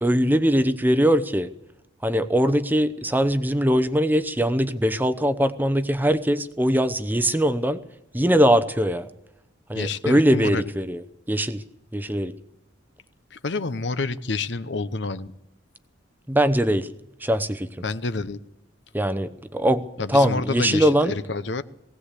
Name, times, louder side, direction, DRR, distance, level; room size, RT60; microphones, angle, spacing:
voice 1, 0.0-1.5 2.0-7.8 8.1-9.1 9.7-11.0 11.3-11.6 11.9-12.3 16.3-16.9 17.2-17.7 18.9-21.1, equal, 10° right, 12 dB, 0.8 m, -21 dB
voice 2, 9.7-10.6 13.3-15.3 17.8-18.4 20.0-21.6, left 3 dB, 65° left, 13 dB, 0.8 m, -28 dB
19.5 x 17.0 x 8.3 m, 0.86 s
head